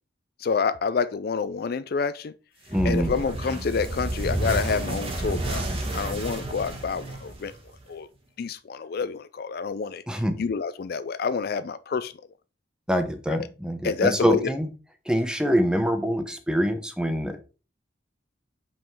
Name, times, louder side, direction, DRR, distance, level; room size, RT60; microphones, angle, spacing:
voice 1, 0.4-2.3 2.8-5.6 5.9-7.5 7.9-8.1 8.4-10.0 10.4-12.1 13.3-13.5 13.8-14.5, left 5 dB, 50° left, 0.4 m, -28 dB
voice 2, 2.7-3.1 10.1-10.3 12.9-14.7 15.1-17.4, equal, 5° right, 0.8 m, -24 dB
sound 1, 2.7-7.8, right 1 dB, 30° right, 1.5 m, -30 dB
5.6 x 5.1 x 4.6 m
head